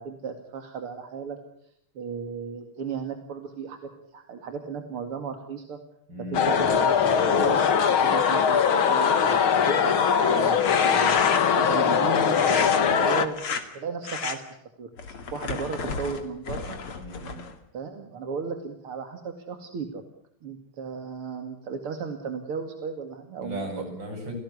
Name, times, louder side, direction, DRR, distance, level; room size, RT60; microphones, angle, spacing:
voice 1, 0.0-1.4 1.9-5.8 6.3-7.7 8.0-9.9 10.2-11.2 11.5-12.7 13.0-14.4 14.8-16.8 17.7-20.0 20.4-23.7, right 5 dB, 85° right, 6 dB, 3.1 m, -35 dB
voice 2, 6.1-6.4 12.6-13.0 17.0-17.4 23.4-24.4, equal, 55° right, 4 dB, 8.0 m, -36 dB
sound 1, 6.3-13.3, left 7 dB, 70° left, 2.5 m, -21 dB
sound 2, 10.4-11.6 12.3-12.8 13.3-13.6 14.0-14.4 15.0-17.6, left 5 dB, 90° left, 3.3 m, -31 dB
29.5 x 17.5 x 8.3 m, 0.74 s
omnidirectional pair, 2.4 m